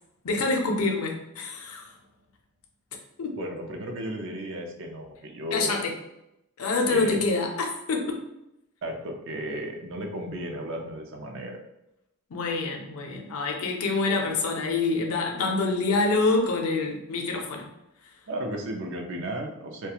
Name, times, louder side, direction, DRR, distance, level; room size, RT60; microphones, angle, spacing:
voice 1, 0.2-1.9 3.2-3.4 5.5-5.9 6.6-8.2 12.3-17.7, left 3 dB, 80° left, 1 dB, 0.5 m, -26 dB
voice 2, 3.4-5.8 6.9-7.2 8.8-11.6 18.3-19.9, right 1 dB, 60° right, 2 dB, 0.5 m, -34 dB
2.3 x 2.2 x 2.8 m, 0.86 s
head